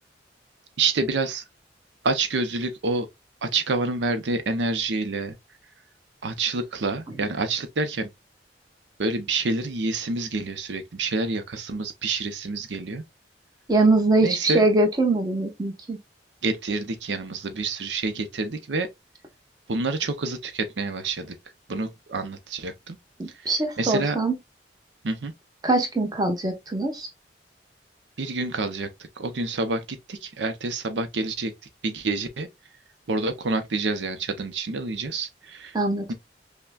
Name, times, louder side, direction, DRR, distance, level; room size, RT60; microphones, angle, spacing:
voice 1, 0.8-1.4 2.0-3.1 3.4-5.3 6.2-8.1 9.0-13.0 14.2-14.7 16.4-18.9 19.7-21.4 21.7-23.0 23.3-24.2 25.0-25.3 28.2-28.9 29.2-31.5 31.8-32.5 33.1-35.8 36.1-36.2, right 3 dB, 80° right, 0.6 m, -28 dB
voice 2, 13.7-16.0 23.2-24.4 25.6-27.1 35.7-36.1, right 2 dB, 20° right, 0.9 m, -22 dB
5.6 x 2.2 x 2.2 m
head